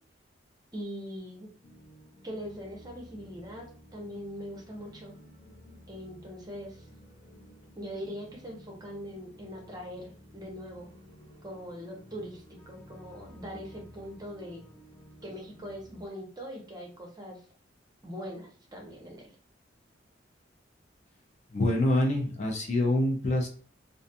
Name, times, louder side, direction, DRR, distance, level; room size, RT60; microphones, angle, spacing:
voice 1, 0.7-1.5 2.2-5.1 5.9-6.8 7.7-10.9 11.4-14.6 15.2-17.4 18.0-19.3, equal, 20° right, 0 dB, 0.7 m, -41 dB
sound 1, 1.6-16.0, equal, 80° left, 1.0 m, -53 dB
voice 2, 21.5-23.5, left 1 dB, 40° left, 1 dB, 0.5 m, -26 dB
2.5 x 2.3 x 2.6 m, 0.43 s
head